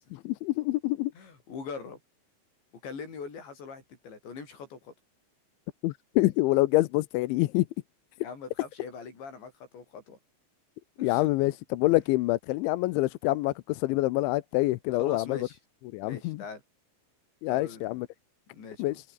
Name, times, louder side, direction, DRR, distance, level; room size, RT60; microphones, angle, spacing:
voice 1, 0.1-1.1 5.8-7.7 11.0-15.4 15.9-16.4 17.4-18.1 18.8-19.0, left 19 dB, 80° left, 3.1 m, -26 dB
voice 2, 1.1-2.0 2.8-4.9 8.2-10.2 11.0-11.6 15.0-15.6 16.0-16.6 17.5-18.0 18.5-19.0, left 5 dB, 65° left, 9.2 m, -42 dB
omnidirectional pair, 5.6 m